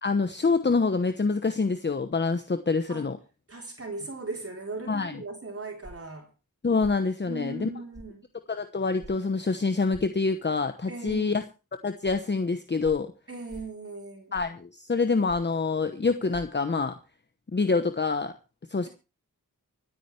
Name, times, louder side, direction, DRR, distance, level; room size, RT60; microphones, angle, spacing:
voice 1, 0.0-3.2 4.9-5.2 6.6-7.7 8.5-11.4 11.8-13.1 14.3-17.0 17.5-18.3 18.7-18.9, left 4 dB, 30° left, 8 dB, 1.0 m, -26 dB
voice 2, 3.5-6.3 7.2-8.2 10.9-11.3 13.3-14.4, right 3 dB, 45° right, 1 dB, 3.8 m, -38 dB
sound 1, 5.8-6.1 6.8-7.0 7.9-8.1 9.0-9.2 9.9-10.1 11.1-11.2 12.0-12.2 12.8-13.0 13.5-13.8 14.3-14.6 15.3-15.6 16.3-16.4, equal, 10° right, 3.4 m, -46 dB
25.5 x 8.9 x 3.3 m, 0.32 s
wide cardioid pair, 110°, 33 cm